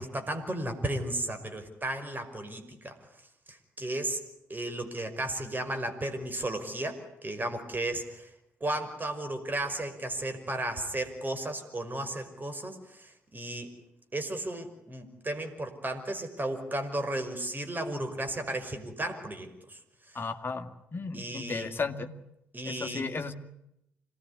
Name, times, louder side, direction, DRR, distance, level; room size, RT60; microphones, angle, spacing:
voice 1, 0.0-3.0 3.5-4.2 4.5-8.3 8.6-13.7 14.1-19.8 20.1-20.2 21.1-21.7 22.5-23.1, right 1 dB, 25° right, 8 dB, 5.5 m, -34 dB
voice 2, 20.1-22.1 22.7-23.3, left 4 dB, 30° left, 6 dB, 2.3 m, -34 dB
26.5 x 19.5 x 9.8 m, 0.82 s
figure-of-eight pair, 45°, 7 cm